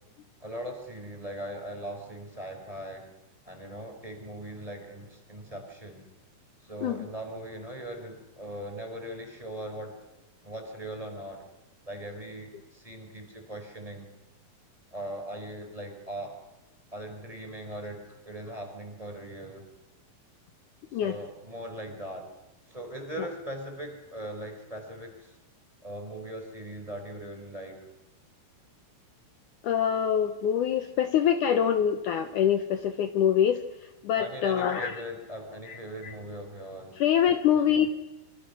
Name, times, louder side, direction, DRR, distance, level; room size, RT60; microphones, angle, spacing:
voice 1, 0.4-3.1 3.4-6.1 6.6-9.9 10.4-11.4 11.9-14.1 14.9-16.3 16.9-19.6 20.9-22.3 22.7-25.4 25.8-27.8 34.2-37.0 37.5-37.9, right 1 dB, 10° right, 3 dB, 4.8 m, -40 dB
voice 2, 29.6-33.6 34.0-35.0 35.7-36.1 37.0-37.9, left 9 dB, 65° left, 8 dB, 2.3 m, -25 dB
27.0 x 25.5 x 6.2 m, 1.0 s
omnidirectional pair, 4.3 m